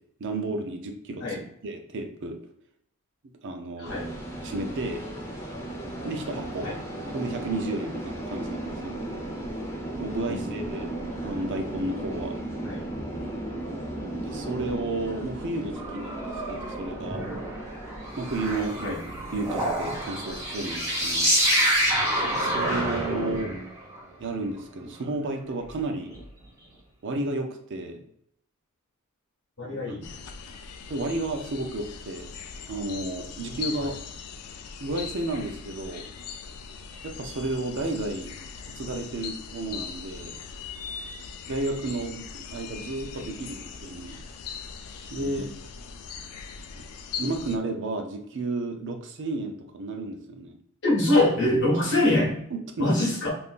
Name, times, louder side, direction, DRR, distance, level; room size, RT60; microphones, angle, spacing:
voice 1, 0.2-2.4 3.4-3.9 4.4-5.0 6.0-6.7 7.1-9.1 10.0-11.0 11.2-12.4 14.3-17.2 18.2-21.3 22.3-23.6 24.2-26.1 27.0-28.0 29.6-29.8 30.9-32.3 32.7-34.0 34.8-36.0 37.0-38.3 38.6-40.3 41.5-44.2 45.1-45.5 47.2-50.6 51.9-52.0 52.5-53.2, right 2 dB, 55° right, 4 dB, 0.5 m, -32 dB
voice 2, 3.8-4.1 6.6-6.8 10.3-10.7 12.6-12.9 18.8-19.0 22.8-23.6 29.6-30.1 45.2-45.5 50.8-52.5 52.8-53.3, left 1 dB, 55° left, -3 dB, 1.3 m, -25 dB
sound 1, 3.8-23.4, right 1 dB, 10° left, 0.7 m, -37 dB
sound 2, 15.8-24.0 26.1-26.2, right 1 dB, 15° right, 0.9 m, -28 dB
sound 3, 30.0-47.6, left 6 dB, 85° left, 0.4 m, -40 dB
3.6 x 2.6 x 2.4 m, 0.71 s
head